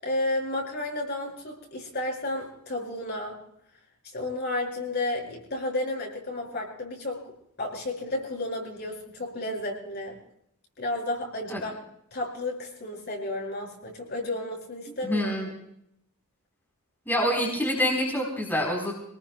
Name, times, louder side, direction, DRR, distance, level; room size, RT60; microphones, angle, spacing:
voice 1, 0.0-3.3 4.1-7.2 7.6-10.2 10.8-11.7 12.1-15.5, left 2 dB, 50° left, -1 dB, 6.1 m, -32 dB
voice 2, 15.0-15.5 17.1-18.9, equal, 10° left, -2 dB, 4.1 m, -26 dB
27.0 x 19.5 x 2.3 m, 0.73 s
head